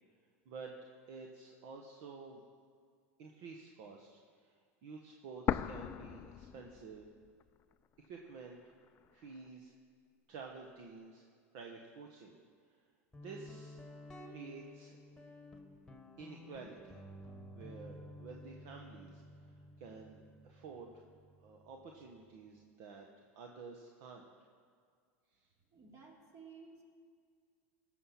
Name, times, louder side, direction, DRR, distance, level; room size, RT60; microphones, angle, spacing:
voice 1, 1.1-2.4 3.2-7.1 8.0-8.6 9.1-9.7 10.3-11.2 11.5-12.4 12.7-12.8 13.2-13.8 14.3-15.0 16.2-17.0 17.5-21.0 21.4-24.3 25.3-25.5, right 4 dB, 60° right, 1 dB, 1.3 m, -51 dB
sound 1, 5.5-7.4 7.7-7.8 8.5-9.5, left 9 dB, 35° left, 0.4 m, -38 dB
Guitar, 13.1-22.6, left 1 dB, 5° left, 1.8 m, -53 dB
voice 2, 25.7-26.8, right 5 dB, 40° right, 0 dB, 2.8 m, -55 dB
17.0 x 6.6 x 5.8 m, 2.1 s
hypercardioid pair, 95°, 8 cm